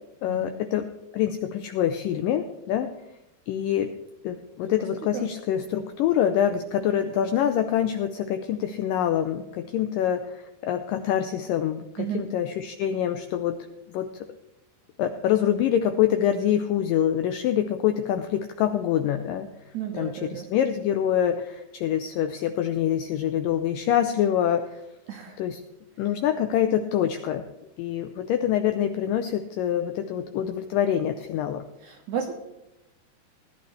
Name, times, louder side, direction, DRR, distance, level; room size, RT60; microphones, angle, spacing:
voice 1, 0.2-0.9 1.1-2.9 3.5-3.9 4.2-13.6 13.9-14.3 15.0-19.5 19.9-24.8 25.4-25.6 26.0-27.4 27.8-31.7, left 10 dB, 85° left, 8 dB, 1.9 m, -25 dB
voice 2, 19.7-20.5 25.1-25.4 31.8-32.3, right 8 dB, 75° right, 2 dB, 1.8 m, -32 dB
18.5 x 11.5 x 3.3 m, 0.94 s
omnidirectional pair, 4.5 m